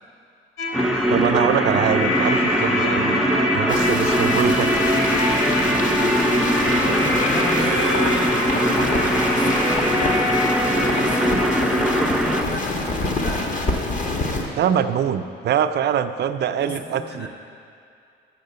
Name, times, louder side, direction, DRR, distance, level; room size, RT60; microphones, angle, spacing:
sound 1, 0.6-13.2, left 1 dB, 90° left, 1.1 m, -26 dB
sound 2, 0.7-12.4, equal, 5° right, 0.5 m, -22 dB
voice 1, 1.1-3.2 3.5-4.7 6.8-7.0 14.6-17.3, right 9 dB, 60° right, 10 dB, 0.4 m, -23 dB
sound 3, 3.7-14.5, left 2 dB, 40° left, 1.2 m, -27 dB
voice 2, 6.9-8.3 8.8-10.4 10.9-13.5 16.6-17.3, left 1 dB, 65° left, -1 dB, 1.7 m, -33 dB
7.5 x 7.0 x 6.7 m, 2.4 s
cardioid pair, 90°, 20 cm